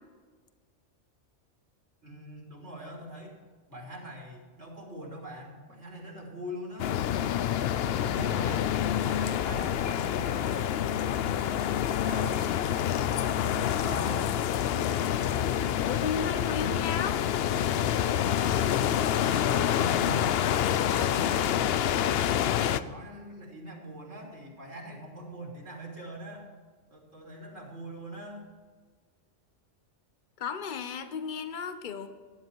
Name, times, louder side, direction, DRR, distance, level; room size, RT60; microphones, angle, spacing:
voice 1, 2.0-3.3 3.7-6.9 7.4-10.7 11.3-12.7 13.0-14.3 19.2-26.5 26.9-28.5, equal, 70° right, -1 dB, 3.4 m, -43 dB
Foliage & Wind recorded inside the 'Tonnara Florio', 6.8-22.8, left 10 dB, 65° left, 0.7 m, -27 dB
voice 2, 15.8-17.3 20.9-21.2 30.4-32.1, left 6 dB, 45° left, 9 dB, 1.0 m, -34 dB
13.5 x 10.5 x 4.6 m, 1.5 s
omnidirectional pair, 1.2 m